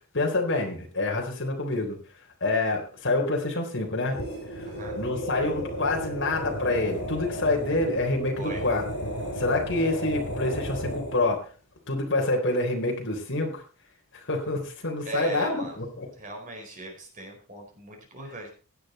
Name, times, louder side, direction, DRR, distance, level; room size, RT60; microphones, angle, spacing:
voice 1, 0.1-2.0 2.4-4.2 4.5-4.7 5.0-8.8 9.4-11.5 11.9-13.6 14.2-16.1, left 2 dB, 55° left, 1 dB, 3.9 m, -27 dB
sound 1, 4.0-11.4, equal, 75° left, 7.0 m, -34 dB
voice 2, 4.6-5.0 8.4-8.6 15.0-15.8 16.2-18.5, right 1 dB, 35° right, 1 dB, 4.5 m, -38 dB
16.5 x 8.9 x 4.3 m, 0.37 s
head